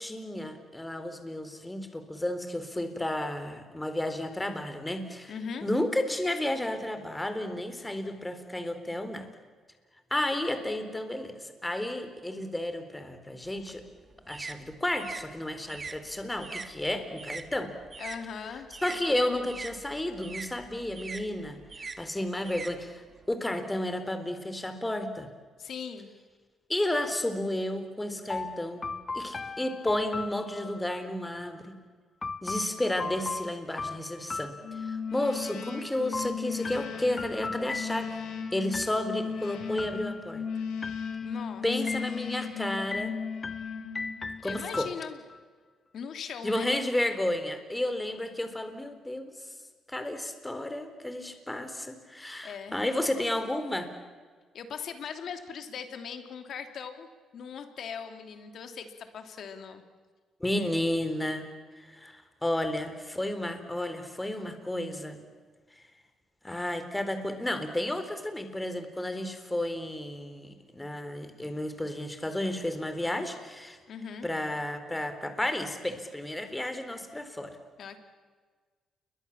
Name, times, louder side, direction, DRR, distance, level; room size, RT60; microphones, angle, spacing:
voice 1, 0.0-5.3 5.6-9.3 10.1-11.3 11.6-13.8 14.3-17.7 18.8-21.6 22.0-25.3 26.7-28.9 29.1-31.7 32.4-38.2 38.5-40.4 41.6-43.2 44.4-44.9 46.4-49.3 49.9-53.9 60.4-61.5 61.8-65.2 66.4-73.8 74.2-77.6, left 1 dB, 10° left, 8 dB, 3.9 m, -32 dB
voice 2, 5.3-5.7 18.0-18.7 25.6-26.1 41.2-41.7 44.4-45.2 45.9-46.7 52.4-52.8 54.5-57.1 57.3-59.8 73.9-74.3 77.8-78.0, left 6 dB, 65° left, 7 dB, 3.1 m, -39 dB
sound 1, 13.4-18.2 18.5-23.3, right 4 dB, 35° right, 2.0 m, -43 dB
sound 2, 28.3-31.0 32.2-35.2 36.1-38.3 38.7-39.3 39.8-40.5 40.8-41.5 41.9-42.5 42.9-45.4, left 3 dB, 30° left, 1.0 m, -38 dB
sound 3, 34.6-44.5, left 6 dB, 80° left, 7.4 m, -36 dB
29.5 x 23.0 x 7.4 m, 1.5 s
cardioid pair, 90°, 0 cm